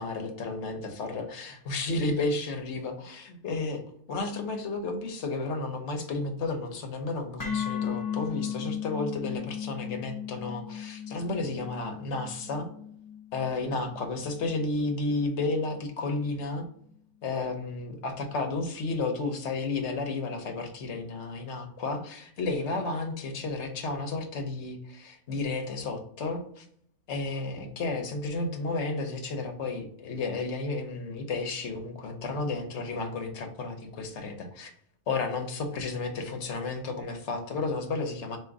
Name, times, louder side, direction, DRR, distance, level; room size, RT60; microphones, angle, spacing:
voice 1, 0.0-3.8 4.1-12.7 13.3-16.6 17.2-26.6 27.1-34.7 35.1-38.4, left 3 dB, 55° left, 5 dB, 1.0 m, -32 dB
sound 1, 7.4-15.5, left 8 dB, 25° left, 0.5 m, -37 dB
3.7 x 2.6 x 4.5 m, 0.65 s
omnidirectional pair, 1.6 m